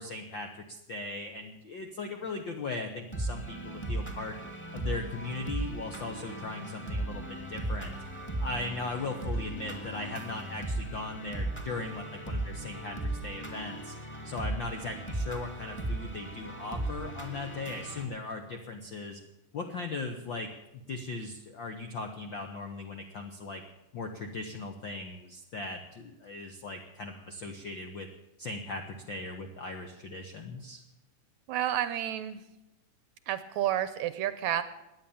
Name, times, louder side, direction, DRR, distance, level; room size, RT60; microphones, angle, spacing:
voice 1, 0.0-4.4 4.7-8.0 8.4-14.0 14.2-19.2 19.5-23.6 23.9-28.1 28.4-30.8, left 3 dB, 70° left, 5 dB, 1.1 m, -38 dB
sound 1, 3.1-18.0, right 2 dB, 5° left, 2.1 m, -37 dB
voice 2, 31.5-32.4 33.3-34.6, right 11 dB, 75° right, 13 dB, 1.8 m, -30 dB
17.5 x 10.5 x 7.1 m, 0.96 s
omnidirectional pair, 3.8 m